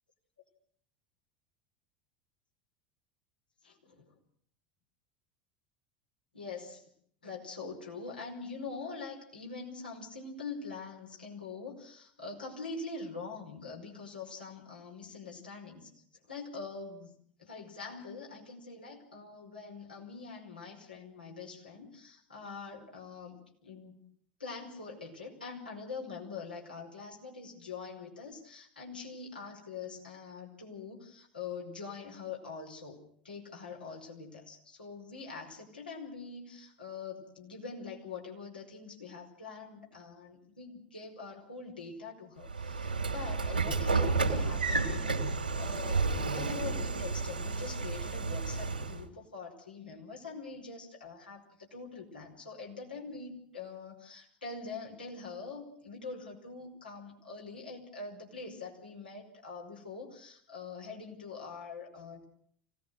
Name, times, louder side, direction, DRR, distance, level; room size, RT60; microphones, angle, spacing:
voice 1, 3.6-4.1 6.3-6.8 7.2-15.9 16.3-17.1 17.4-24.0 24.4-62.3, left 4 dB, 80° left, -1 dB, 5.2 m, -44 dB
Train / Sliding door, 42.5-49.0, right 4 dB, 80° right, 2.5 m, -31 dB
25.5 x 18.5 x 6.5 m, 0.63 s
figure-of-eight pair, 75°, 5 cm